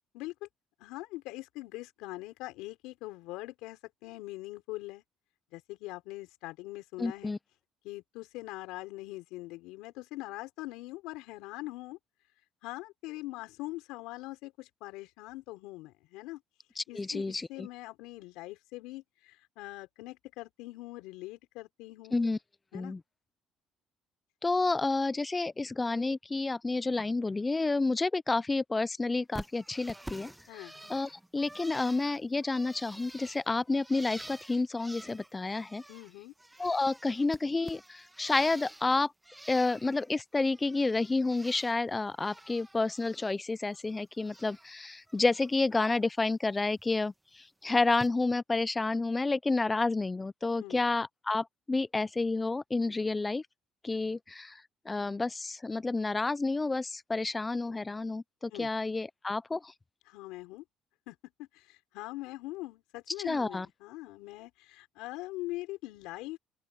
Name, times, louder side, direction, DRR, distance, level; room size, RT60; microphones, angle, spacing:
voice 1, 0.1-0.5 0.8-5.0 5.5-7.3 7.8-12.0 12.6-16.4 16.9-22.2 22.7-22.9 30.5-30.7 35.9-36.3 50.6-50.8 58.5-58.7 60.1-60.6 61.1-66.4, left 19 dB, 90° left, 4.8 m, -42 dB
voice 2, 7.0-7.4 16.8-17.7 22.1-22.4 22.7-23.0 24.4-35.8 36.6-39.1 39.5-47.1 47.6-53.4 53.8-54.6 54.9-59.7 63.2-63.7, left 3 dB, 20° left, 0.5 m, -30 dB
Bird, 29.3-36.1 36.4-38.9 39.2-40.1 40.4-41.8 42.1-43.3 43.6-44.7 45.1-45.5 46.8-46.9 47.9-48.1, right 1 dB, 5° right, 1.3 m, -48 dB
open air
cardioid pair, 100°, 0 cm